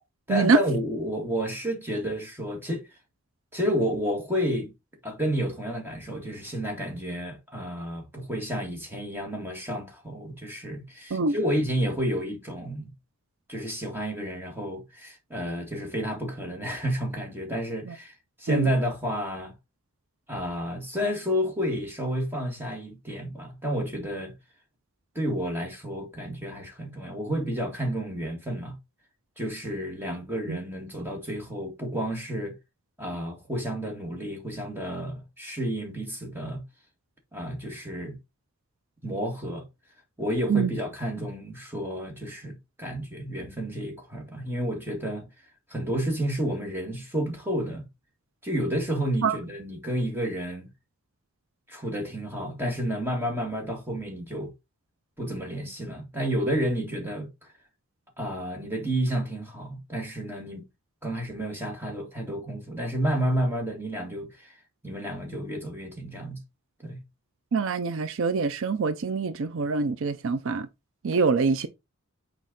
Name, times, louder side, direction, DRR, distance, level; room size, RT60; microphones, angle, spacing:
voice 1, 0.3-2.9 3.5-4.7 5.0-12.9 13.5-18.1 18.4-19.5 20.3-24.3 25.2-28.8 29.4-32.5 33.0-36.6 37.3-38.2 39.0-39.6 40.2-45.3 45.7-47.9 48.4-50.7 51.7-54.5 55.2-57.3 58.2-60.6 61.0-64.5 64.8-66.4 66.8-67.0, equal, 10° right, 1.8 m, -30 dB
voice 2, 67.5-70.7 71.0-71.7, right 4 dB, 60° right, 0.5 m, -24 dB
6.3 x 4.5 x 3.8 m
head